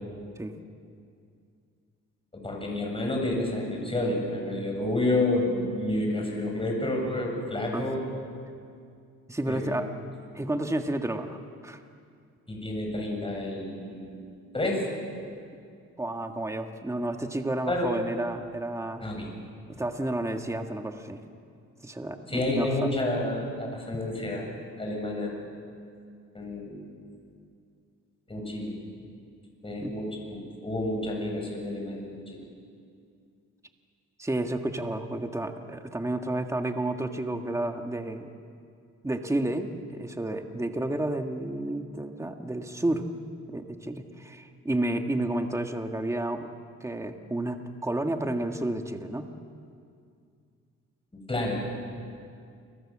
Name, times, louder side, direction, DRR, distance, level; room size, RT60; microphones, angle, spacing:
voice 1, 2.3-8.0 9.4-9.7 12.5-14.2 14.5-14.9 17.7-17.9 19.0-19.3 22.3-25.3 26.3-26.9 28.3-28.8 29.6-32.4 51.3-51.6, left 1 dB, 20° left, 0 dB, 7.6 m, -30 dB
voice 2, 9.3-9.9 10.3-11.8 16.0-19.0 19.7-21.2 21.8-22.9 29.8-30.0 34.2-38.3 39.0-43.1 43.5-46.5 46.8-49.3, right 1 dB, 10° right, 5 dB, 1.7 m, -31 dB
29.0 x 23.5 x 7.5 m, 2.3 s
cardioid pair, 90°, 30 cm